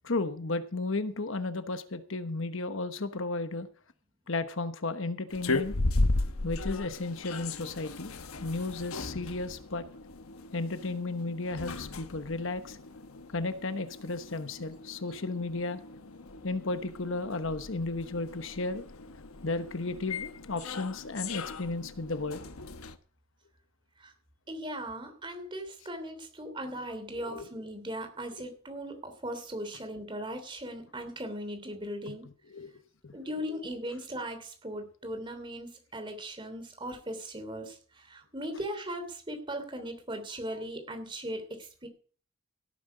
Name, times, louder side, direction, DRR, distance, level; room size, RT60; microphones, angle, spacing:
voice 1, 0.0-3.7 4.3-5.8 6.4-8.1 8.4-9.8 10.5-12.8 13.3-15.8 16.4-18.8 19.4-22.4 27.1-27.5 32.1-32.2 32.5-32.7 33.0-33.2, left 3 dB, 60° left, 11 dB, 1.1 m, -34 dB
sound 1, 5.3-23.0, left 2 dB, 85° left, 1.1 m, -36 dB
voice 2, 24.5-32.3 33.1-41.9, equal, 20° right, 6 dB, 3.1 m, -38 dB
17.5 x 9.5 x 5.0 m, 0.43 s
head